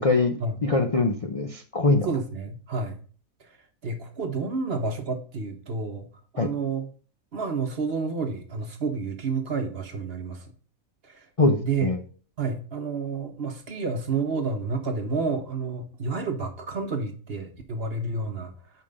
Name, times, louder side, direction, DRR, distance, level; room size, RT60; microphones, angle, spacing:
voice 1, 0.0-0.3 0.6-2.1 6.4-6.5 11.4-12.0, left 3 dB, 35° left, 3 dB, 0.5 m, -22 dB
voice 2, 2.0-3.0 3.4-3.5 3.8-6.1 6.3-6.9 7.3-10.5 11.0-11.3 11.6-11.9 12.4-18.5, right 4 dB, 50° right, 6 dB, 1.2 m, -30 dB
5.4 x 5.1 x 6.5 m, 0.41 s
omnidirectional pair, 1.5 m